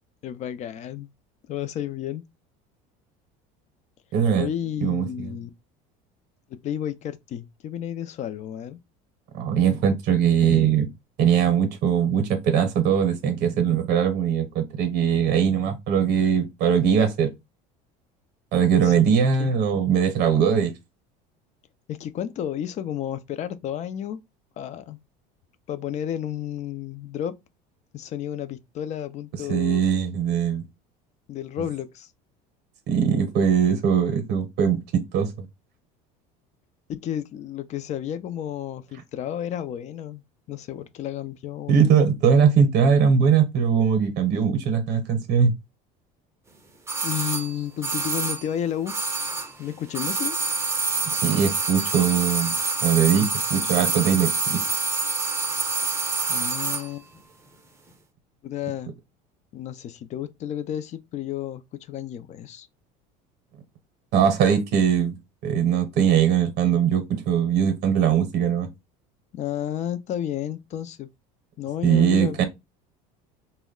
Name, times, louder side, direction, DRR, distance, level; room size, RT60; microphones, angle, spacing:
voice 1, 0.2-1.1 1.5-2.2 4.4-5.5 6.5-8.8 18.8-19.1 19.4-19.5 21.9-24.2 24.6-25.0 25.7-27.3 27.9-29.8 31.3-32.1 36.9-41.9 47.0-49.0 49.6-50.4 56.3-57.1 58.4-58.9 59.5-62.7 69.3-71.1 71.6-72.4, left 10 dB, 40° left, 0.4 m, -32 dB
voice 2, 4.1-4.5 4.8-5.3 9.3-10.9 11.2-17.3 18.5-20.7 29.5-30.6 32.9-35.5 41.7-45.5 51.2-54.6 64.1-65.2 65.4-68.7 71.8-72.4, right 7 dB, 60° right, 0.7 m, -21 dB
sound 1, 46.9-49.6 49.9-56.9 57.2-57.3, right 4 dB, 15° right, 0.5 m, -26 dB
2.2 x 2.1 x 3.6 m
supercardioid pair, 110°, 19 cm